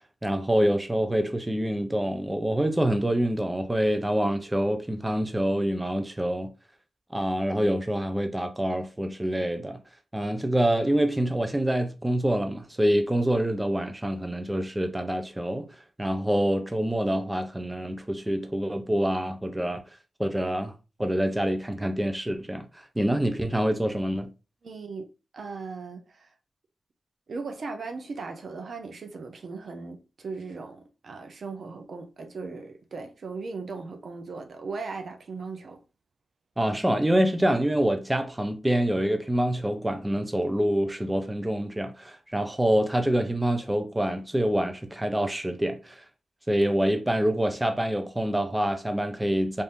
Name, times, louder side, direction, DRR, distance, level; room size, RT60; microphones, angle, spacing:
voice 1, 0.2-6.5 7.1-9.8 10.1-15.7 16.0-19.8 20.2-20.7 21.0-24.3 36.6-46.0 46.5-49.6, right 1 dB, 15° right, 0.6 m, -26 dB
voice 2, 24.6-25.0 25.3-26.3 27.3-35.8, right 4 dB, 65° right, 0.6 m, -38 dB
2.6 x 2.6 x 3.6 m
cardioid pair, 60°, 0 cm